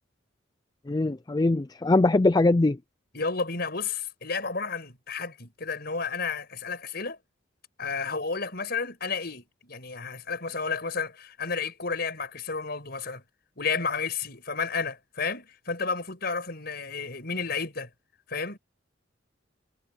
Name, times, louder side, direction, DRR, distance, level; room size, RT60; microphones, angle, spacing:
voice 1, 0.9-2.8, left 2 dB, 20° left, 0.4 m, -22 dB
voice 2, 3.1-7.2 7.8-13.2 13.6-17.9 18.3-18.6, left 5 dB, 55° left, 6.0 m, -32 dB
head